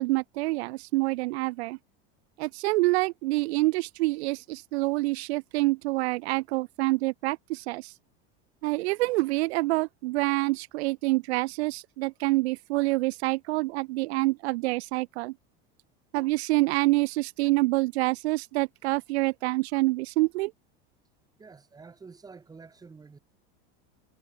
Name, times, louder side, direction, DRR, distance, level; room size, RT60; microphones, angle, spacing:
voice 1, 0.0-1.8 2.4-7.9 8.6-15.3 16.1-20.5, right 21 dB, 80° right, 0.7 m, -27 dB
voice 2, 21.4-23.2, right 4 dB, 10° right, 2.6 m, -48 dB
supercardioid pair, 155°, 32 cm